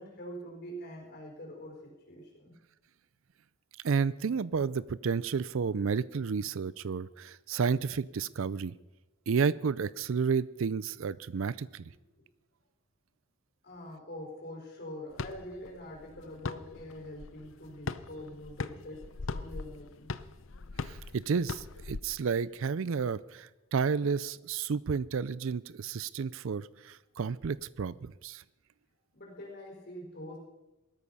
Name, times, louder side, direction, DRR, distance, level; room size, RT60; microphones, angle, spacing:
voice 1, 0.0-2.5 12.1-12.2 13.6-20.1 29.1-30.4, equal, 50° left, -1 dB, 4.3 m, -44 dB
voice 2, 3.8-8.7 9.3-11.9 20.8-28.4, right 5 dB, 65° right, 19 dB, 0.4 m, -31 dB
sound 1, 15.1-22.0, left 4 dB, 65° left, 0.7 m, -41 dB
19.0 x 13.0 x 5.5 m, 1.0 s
head